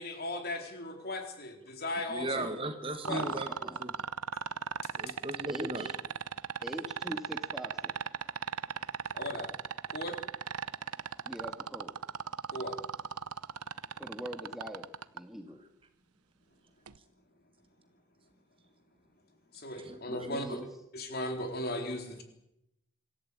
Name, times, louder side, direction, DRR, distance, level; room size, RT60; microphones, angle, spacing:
voice 1, 0.0-2.5 3.1-3.2 9.1-9.5 9.9-10.2 12.5-12.8 19.5-20.6 20.9-22.2, left 1 dB, 45° left, 4 dB, 4.0 m, -37 dB
voice 2, 2.0-3.9 5.0-5.9 19.7-20.3, right 2 dB, 25° right, 8 dB, 1.3 m, -37 dB
sound 1, 3.0-15.2 16.9-17.0, right 7 dB, 90° right, 0.8 m, -36 dB
voice 3, 3.1-3.8 5.5-5.9 6.6-7.9 11.3-11.9 14.0-15.6 20.1-20.7, equal, ahead, 4 dB, 1.9 m, -43 dB
26.0 x 14.5 x 8.7 m, 0.83 s
head